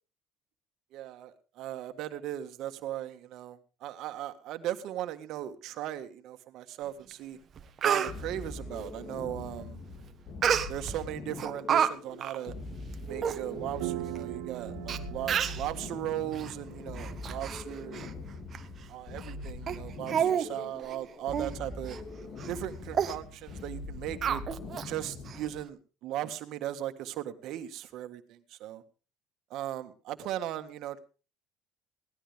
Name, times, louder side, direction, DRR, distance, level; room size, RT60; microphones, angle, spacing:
voice 1, 0.9-7.4 7.8-9.8 10.4-12.5 13.1-18.1 18.9-22.0 22.5-24.4 24.8-28.8 29.5-31.0, right 12 dB, 65° right, 8 dB, 1.7 m, -38 dB
Speech, 7.1-7.2 7.6-8.1 10.4-11.0 11.4-11.9 12.2-12.4 12.9-13.0 13.2-13.4 14.2-14.3 14.9-15.0 15.3-15.7 16.3-16.5 17.0-17.6 17.9-18.1 18.5-18.6 19.2-19.3 19.7-19.8 20.1-20.5 20.8-20.9 21.3-21.5 21.9-22.0 22.4-22.6 22.9-23.2 24.2-24.9 25.3-25.4, right 8 dB, 40° right, 1.3 m, -29 dB
sound 1, 8.1-25.7, left 3 dB, 45° left, 2.7 m, -42 dB
sound 2, 13.1-17.5, right 17 dB, 85° right, 1.2 m, -40 dB
18.0 x 13.0 x 3.5 m, 0.35 s
cardioid pair, 110°, 0 cm